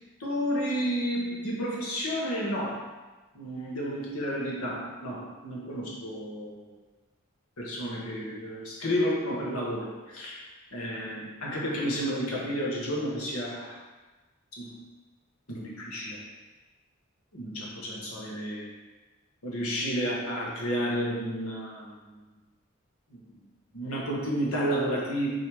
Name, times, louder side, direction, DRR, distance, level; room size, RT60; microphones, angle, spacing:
voice 1, 0.2-2.8 3.3-6.7 7.6-10.4 10.7-13.8 14.6-14.8 15.5-16.2 17.3-18.7 19.4-22.2 23.1-23.2 23.7-25.3, equal, 90° left, -3 dB, 1.4 m, -31 dB
6.5 x 3.1 x 4.8 m, 1.2 s
head